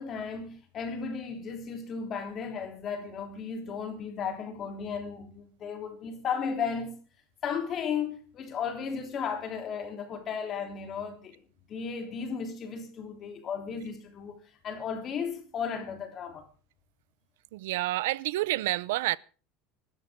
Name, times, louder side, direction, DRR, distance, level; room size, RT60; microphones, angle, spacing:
voice 1, 0.0-7.0 7.4-11.4 11.7-16.5, left 6 dB, 30° left, 3.3 m, -35 dB
voice 2, 17.5-19.2, right 17 dB, 90° right, 0.6 m, -29 dB
23.0 x 13.0 x 3.6 m
cardioid pair, 170°, 0 cm